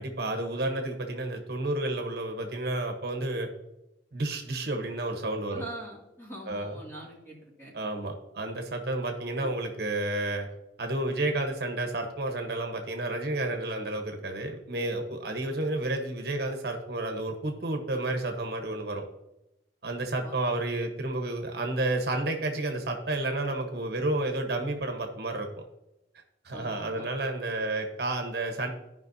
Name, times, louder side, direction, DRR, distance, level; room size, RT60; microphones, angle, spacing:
voice 1, 0.0-3.5 4.1-5.6 6.5-6.7 7.7-10.5 10.8-19.0 19.8-25.5 26.4-28.7, right 2 dB, 60° right, 4 dB, 1.1 m, -31 dB
voice 2, 5.5-8.0 9.4-9.5 20.2-20.4 26.5-27.1, right 1 dB, 10° left, -3 dB, 2.3 m, -44 dB
14.5 x 5.4 x 2.7 m, 0.92 s
head